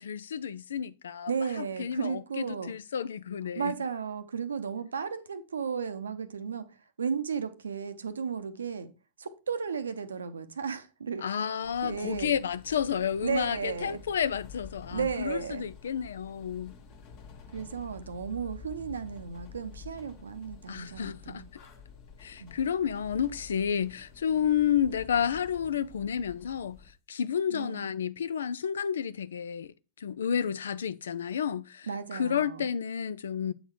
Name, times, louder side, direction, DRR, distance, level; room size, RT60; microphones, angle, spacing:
voice 1, 0.0-1.3 1.6-3.7 11.2-16.7 20.7-21.4 22.2-26.8 27.1-33.5, left 8 dB, 65° left, 0.4 m, -31 dB
voice 2, 1.3-2.7 3.5-8.9 9.2-11.4 11.8-12.3 13.2-14.0 14.9-15.6 17.5-21.5 22.4-22.5 27.5-27.8 31.9-32.7, right 6 dB, 70° right, 0.7 m, -34 dB
sound 1, 11.6-26.9, left 6 dB, 45° left, 1.2 m, -49 dB
7.8 x 4.0 x 4.6 m
figure-of-eight pair, 90°, 0 cm